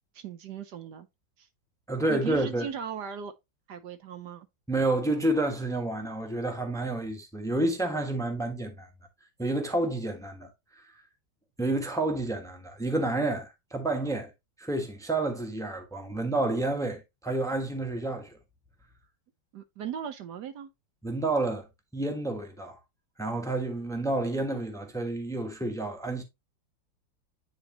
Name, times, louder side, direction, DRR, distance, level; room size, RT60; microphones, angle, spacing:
voice 1, 0.1-1.1 1.4-1.5 2.1-3.3 3.7-4.5 19.5-20.7, right 8 dB, 70° right, 1.2 m, -38 dB
voice 2, 1.9-2.7 4.7-8.9 9.4-10.5 11.6-14.3 14.6-18.4 21.0-21.7 21.9-22.8 23.2-26.2, right 2 dB, ahead, 1.2 m, -29 dB
9.7 x 4.4 x 2.8 m
omnidirectional pair, 2.0 m